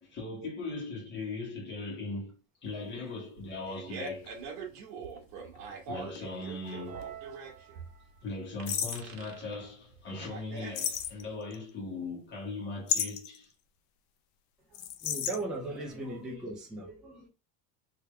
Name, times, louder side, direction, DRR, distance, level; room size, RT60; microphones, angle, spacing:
voice 1, 0.0-2.4 2.6-4.4 5.9-7.0 8.2-13.5, left 3 dB, 20° left, 1.3 m, -39 dB
voice 2, 2.9-3.3 14.7-17.3, right 2 dB, ahead, 0.3 m, -39 dB
sound 1, 3.0-3.1 4.1-6.8 7.0-7.1 8.7-9.1 10.7-11.5 12.9-13.4 14.7-15.4, left 9 dB, 55° left, 0.6 m, -33 dB
Fart, 3.4-11.3, right 4 dB, 60° right, 1.2 m, -44 dB
sound 2, 6.6-8.3, right 9 dB, 30° right, 0.7 m, -47 dB
3.4 x 2.8 x 3.3 m
supercardioid pair, 155°, 49 cm